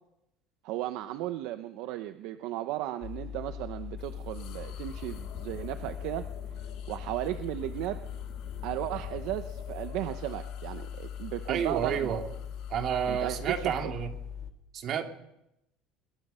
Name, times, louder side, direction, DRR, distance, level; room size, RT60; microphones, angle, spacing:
voice 1, 0.6-6.3 6.9-8.1 8.6-12.2 13.1-13.9, right 14 dB, 55° right, 9 dB, 1.0 m, -35 dB
sound 1, 3.0-14.5, left 8 dB, 30° left, 2.2 m, -40 dB
sound 2, 4.0-13.8, left 9 dB, 50° left, 2.8 m, -49 dB
voice 2, 11.5-12.2 12.7-14.1 14.7-15.0, right 8 dB, 35° right, 4 dB, 2.6 m, -30 dB
27.0 x 22.0 x 5.7 m, 0.85 s
cardioid pair, 175°, 0 cm